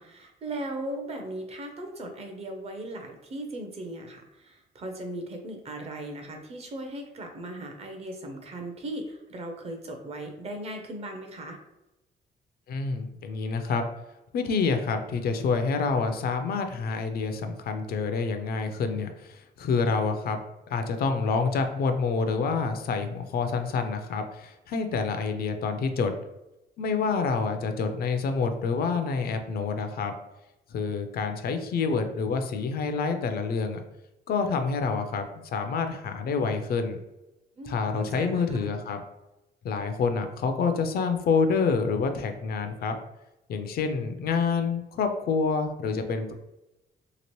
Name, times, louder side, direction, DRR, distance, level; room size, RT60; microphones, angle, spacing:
voice 1, 0.0-11.6 37.6-38.8, right 1 dB, 35° right, 4 dB, 0.5 m, -38 dB
voice 2, 12.7-13.8 14.3-20.4 20.7-26.1 26.8-30.1 30.7-33.8 34.3-35.2 35.5-37.0 37.6-39.0 39.6-42.9 43.5-46.3, left 5 dB, 55° left, 7 dB, 0.4 m, -27 dB
2.9 x 2.8 x 3.0 m, 0.95 s
cardioid pair, 165°, 18 cm